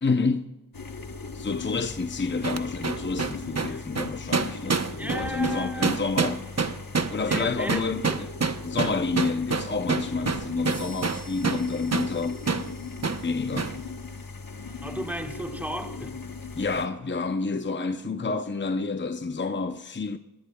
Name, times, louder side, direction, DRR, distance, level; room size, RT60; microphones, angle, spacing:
voice 1, 0.0-0.6 1.3-6.5 7.1-8.3 8.6-12.4 13.2-13.7 16.5-20.2, left 4 dB, 30° left, 0.7 m, -29 dB
sound 1, 0.7-16.9, left 4 dB, 70° left, 1.1 m, -39 dB
sound 2, 2.4-11.7 11.9-12.1 12.5-12.7 13.0-13.2 13.6-13.8, right 4 dB, 45° right, 0.9 m, -27 dB
voice 2, 5.0-6.0 7.2-8.2 14.8-16.2, equal, 5° right, 1.4 m, -35 dB
sound 3, 10.6-14.4, left 1 dB, 85° right, 4.5 m, -51 dB
24.0 x 19.5 x 2.3 m
wide cardioid pair, 45°, 36 cm